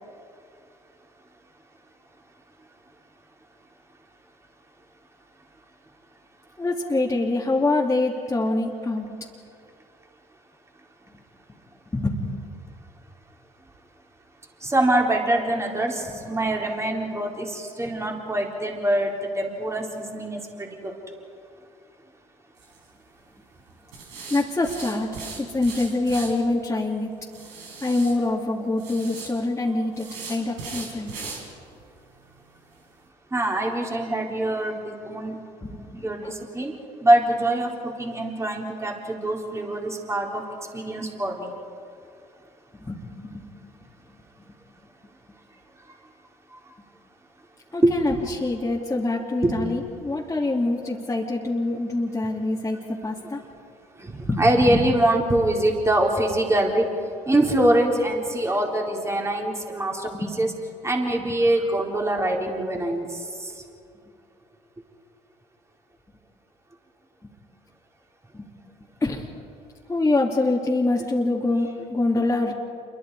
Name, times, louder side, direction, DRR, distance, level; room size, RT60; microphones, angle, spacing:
voice 1, 6.6-9.1 11.9-12.3 24.3-25.1 25.4-27.1 27.8-31.1 35.6-36.3 42.7-43.4 47.7-53.4 54.3-54.8 60.1-60.3 67.2-67.3 68.3-68.5 69.0-69.3 69.9-72.5, left 2 dB, 20° left, -4 dB, 2.8 m, -25 dB
voice 2, 14.6-20.9 33.3-35.4 35.9-36.7 37.0-40.4 40.7-41.5 47.8-48.3 49.4-49.5 54.0-56.9 57.3-60.5 60.8-63.1 63.4-63.5, right 1 dB, 15° right, 0 dB, 4.1 m, -24 dB
sound 1, 22.6-22.8 23.9-26.3 27.3-28.1 28.8-29.3 29.9-31.4 31.8-31.9 32.3-32.4 32.8-32.9, right 4 dB, 80° right, 5.1 m, -38 dB
28.0 x 23.0 x 4.9 m, 2.5 s
hypercardioid pair, 65°, 16 cm